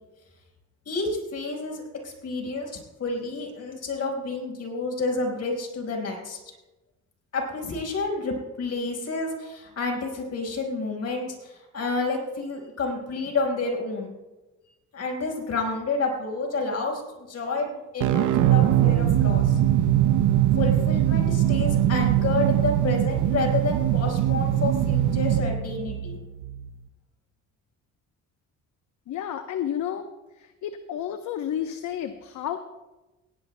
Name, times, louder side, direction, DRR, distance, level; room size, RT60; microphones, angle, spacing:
voice 1, 0.8-2.7 3.0-6.4 7.3-14.1 14.9-17.0 17.3-19.6 20.6-26.2, left 3 dB, 55° left, 1 dB, 4.9 m, -29 dB
sound 1, 18.0-26.7, right 12 dB, 80° right, 0.7 m, -22 dB
voice 2, 29.1-30.1 30.4-32.6, left 10 dB, 75° left, 7 dB, 0.9 m, -31 dB
18.5 x 17.5 x 2.2 m, 1.1 s
cardioid pair, 90°, 30 cm